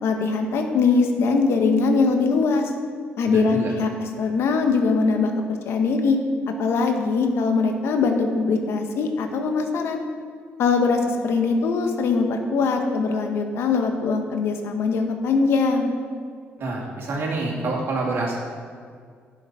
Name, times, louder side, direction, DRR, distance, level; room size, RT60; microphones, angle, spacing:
voice 1, 0.0-2.7 3.2-6.2 6.5-10.0 10.6-15.9, left 4 dB, 75° left, 4 dB, 1.2 m, -22 dB
voice 2, 3.3-3.7 16.6-18.4, right 2 dB, 65° right, -2 dB, 2.6 m, -27 dB
11.0 x 6.5 x 5.7 m, 2.1 s
cardioid pair, 80°, 4 cm